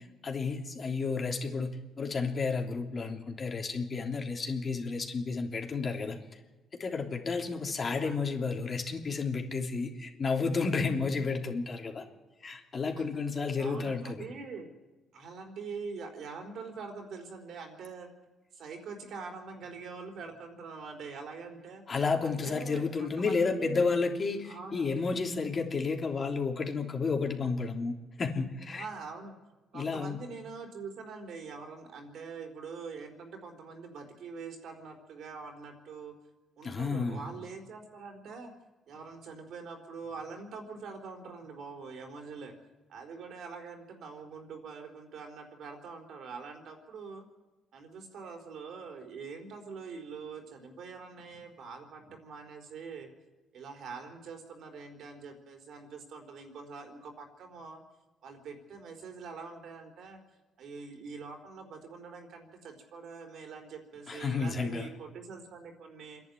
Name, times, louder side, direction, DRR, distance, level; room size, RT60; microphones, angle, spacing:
voice 1, 0.0-6.2 6.8-12.0 12.4-14.3 21.9-28.9 29.7-30.2 36.6-37.3 64.1-64.9, left 4 dB, 45° left, 2 dB, 3.2 m, -31 dB
voice 2, 7.8-8.2 12.8-13.1 13.6-14.7 15.1-18.1 18.5-21.8 22.2-23.9 24.5-25.0 28.7-29.3 29.7-36.1 36.6-38.5 38.9-42.5 42.9-47.2 47.7-53.1 53.5-57.8 58.2-60.2 60.6-66.2, right 4 dB, 75° right, 4 dB, 4.2 m, -44 dB
27.0 x 11.0 x 9.8 m, 1.2 s
cardioid pair, 75°, 0 cm